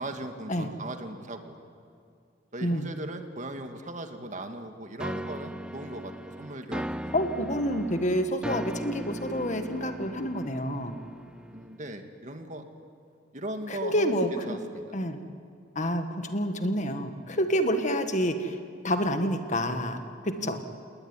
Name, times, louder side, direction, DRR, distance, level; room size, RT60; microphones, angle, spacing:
voice 1, 0.0-1.6 2.5-7.2 11.5-12.7 13.3-15.0 20.4-20.5, right 1 dB, 40° right, 6 dB, 2.0 m, -38 dB
voice 2, 2.6-2.9 7.1-11.0 13.7-14.6 14.9-15.2 15.8-18.6 18.8-20.6, equal, 40° left, 7 dB, 1.8 m, -28 dB
sound 1, 5.0-11.8, equal, 5° right, 0.6 m, -38 dB
29.0 x 19.5 x 9.9 m, 2.3 s
head